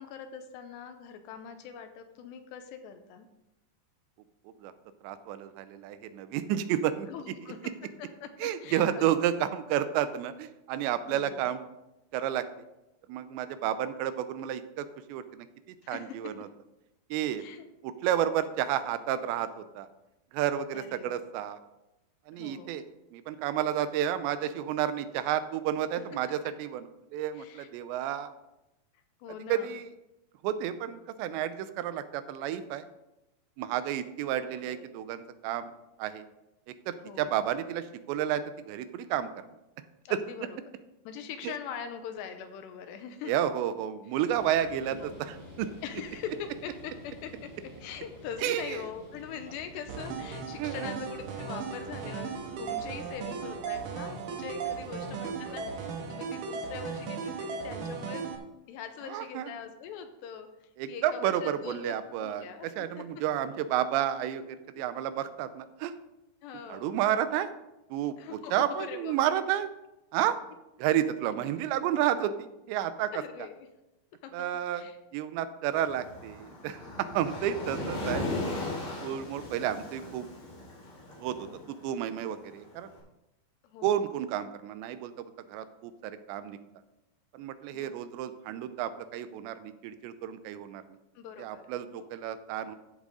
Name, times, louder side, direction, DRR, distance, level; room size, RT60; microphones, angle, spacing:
voice 1, 0.0-3.3 7.1-7.7 8.0-9.4 11.1-11.5 15.8-16.3 17.3-17.7 20.7-21.2 22.3-22.7 27.3-27.7 29.2-29.7 34.4-34.9 37.0-37.3 40.1-40.6 41.1-43.3 44.9-45.3 45.8-58.3 58.7-62.7 64.8-64.9 66.4-66.9 68.2-68.5 68.8-69.1 71.6-71.7 73.1-73.7 74.2-74.3 74.7-75.0 77.5-77.9 79.4-79.5 81.4-81.7 83.6-84.0 87.7-88.0 91.2-91.6 91.9-92.1, left 7 dB, 80° left, 8 dB, 3.0 m, -43 dB
voice 2, 5.0-7.1 8.4-11.6 12.1-12.5 13.1-15.5 15.9-16.5 17.1-17.4 17.8-19.9 20.3-21.6 22.3-22.8 23.1-28.3 29.5-29.9 30.4-32.9 33.6-35.7 36.0-36.3 36.9-39.3 40.1-40.2 41.4-41.5 43.3-45.7 48.4-48.8 50.6-50.9 55.5-55.7 59.0-59.5 60.8-65.9 66.7-67.5 67.9-69.7 70.1-70.4 70.8-73.1 74.3-74.9 75.1-78.3 78.9-80.3 81.2-82.9 83.8-86.6 87.3-91.0 91.4-92.8, right 10 dB, 90° right, 12 dB, 2.9 m, -31 dB
sound 1, 44.3-56.0, left 1 dB, 15° left, 3.8 m, -50 dB
sound 2, 49.9-58.4, right 5 dB, 65° right, 2.5 m, -36 dB
Waves surf, 75.7-82.8, left 2 dB, 55° left, 5.0 m, -38 dB
14.5 x 7.3 x 3.8 m, 0.94 s
omnidirectional pair, 5.0 m